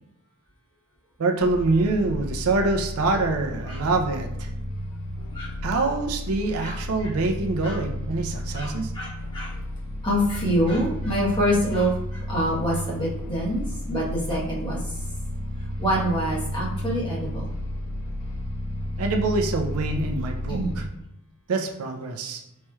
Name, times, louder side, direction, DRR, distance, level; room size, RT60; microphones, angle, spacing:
voice 1, 1.2-4.5 5.6-8.9 19.0-20.9 21.5-22.4, right 3 dB, 80° right, 4 dB, 0.5 m, -25 dB
sound 1, 1.4-20.9, left 1 dB, 85° left, 0.5 m, -32 dB
voice 2, 5.3-5.8 6.6-7.1 7.6-7.8 8.5-9.5 10.0-14.8 15.8-17.5 20.5-20.8, equal, 20° left, -6 dB, 1.0 m, -26 dB
4.2 x 3.1 x 2.3 m, 0.81 s
head